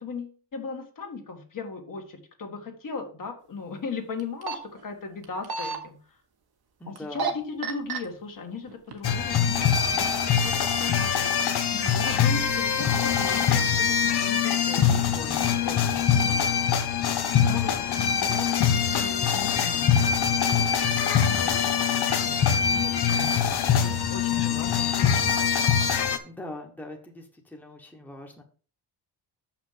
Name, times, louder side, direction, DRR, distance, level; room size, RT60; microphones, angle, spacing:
voice 1, 0.0-6.0 6.9-11.2 11.7-16.6 17.3-21.0 21.4-23.4 23.7-25.6, left 4 dB, 50° left, 3 dB, 1.8 m, -38 dB
sound 1, 4.2-4.6 5.2-5.8 7.0-7.3 7.6-8.0 8.7-9.2 9.6-9.7, right 5 dB, 60° right, 1.4 m, -29 dB
voice 2, 6.8-7.3 26.2-28.4, left 1 dB, 5° left, 1 dB, 1.3 m, -42 dB
sound 2, 9.0-26.2, left 7 dB, 65° left, 1.1 m, -23 dB
6.3 x 5.9 x 5.7 m, 0.40 s
cardioid pair, 105°, 43 cm